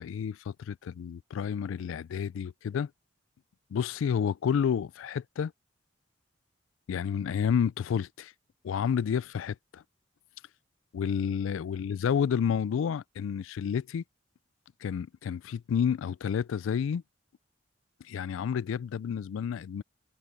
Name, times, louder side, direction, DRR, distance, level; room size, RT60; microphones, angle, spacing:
voice 1, 0.0-2.9 3.7-5.5 6.9-8.3 8.6-9.8 10.9-14.0 14.8-17.0 18.1-19.8, left 7 dB, 85° left, 0.3 m, -30 dB
head